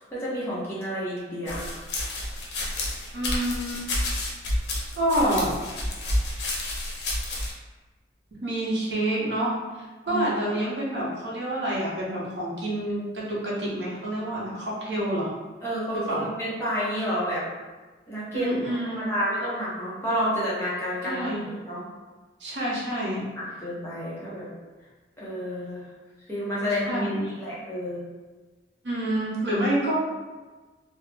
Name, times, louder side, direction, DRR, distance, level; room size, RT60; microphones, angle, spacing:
voice 1, 0.1-1.7 10.1-10.3 15.6-17.4 18.1-21.8 23.4-24.5 25.2-25.8 26.3-28.0, equal, 15° left, -9 dB, 0.7 m, -30 dB
sound 1, 1.5-7.5, left 1 dB, 80° left, 0.6 m, -30 dB
voice 2, 3.1-3.8 5.0-5.5 8.4-9.6 10.1-15.3 15.9-16.2 18.3-19.1 21.0-21.5 22.4-23.3 26.9-27.3 28.8-29.9, right 1 dB, 85° right, -5 dB, 0.7 m, -27 dB
2.3 x 2.0 x 3.2 m, 1.3 s
head